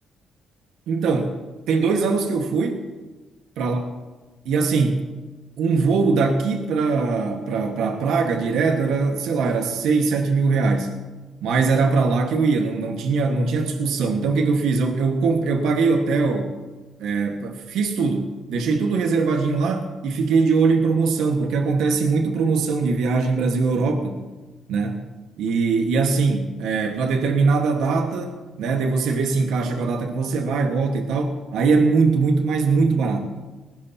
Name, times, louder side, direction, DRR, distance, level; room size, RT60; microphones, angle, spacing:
voice 1, 0.9-1.3 1.7-2.8 3.6-3.8 4.4-5.0 5.6-10.9 11.4-16.5 17.0-24.2 24.7-25.0 25.4-33.2, right 4 dB, 85° right, 3 dB, 1.4 m, -21 dB
20.0 x 17.0 x 2.8 m, 1.2 s
cardioid pair, 90°, 0 cm